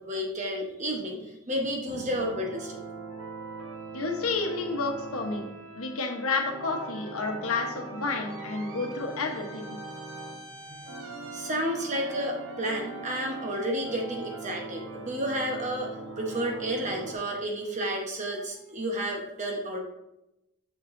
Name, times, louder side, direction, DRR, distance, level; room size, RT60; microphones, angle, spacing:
voice 1, 0.0-2.8 10.7-10.9 11.3-19.8, equal, 35° right, 1 dB, 1.0 m, -31 dB
sound 1, 1.9-17.2, right 3 dB, 65° right, 0.9 m, -41 dB
voice 2, 3.9-5.5 5.7-9.8, left 3 dB, 80° left, 3 dB, 1.0 m, -30 dB
6.5 x 5.9 x 2.6 m, 0.90 s
head